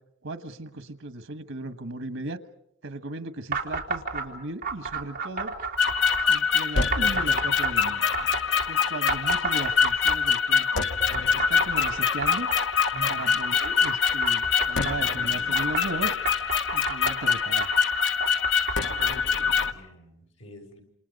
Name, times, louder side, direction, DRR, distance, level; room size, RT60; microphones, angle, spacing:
voice 1, 0.2-2.4 2.8-5.5 6.3-8.1 8.7-10.9 11.3-12.5 13.1-16.1 16.7-17.7, right 2 dB, 90° right, 10 dB, 1.3 m, -36 dB
sound 1, 3.5-4.3 4.6-6.3 6.9-8.7 9.1-10.4 11.1-15.0 15.5-19.1, right 4 dB, 45° right, 3.1 m, -32 dB
sound 2, 5.8-19.7, left 6 dB, 65° left, 1.1 m, -24 dB
voice 2, 12.9-13.4 19.4-20.8, right 1 dB, 80° left, 2 dB, 6.9 m, -44 dB
28.0 x 28.0 x 5.3 m, 0.74 s
head